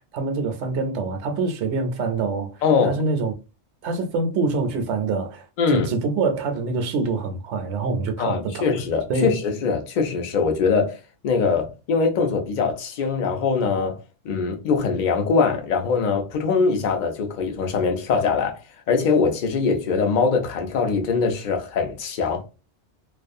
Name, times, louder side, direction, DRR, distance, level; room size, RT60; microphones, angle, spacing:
voice 1, 0.0-2.5 2.8-3.3 3.8-8.7 9.1-9.3, right 3 dB, 75° right, 0.8 m, -25 dB
voice 2, 2.6-3.0 5.6-5.9 8.2-11.0 11.2-14.0 14.2-18.6 18.9-22.4, left 5 dB, 50° left, 0.6 m, -22 dB
2.4 x 2.2 x 2.5 m
omnidirectional pair, 1.2 m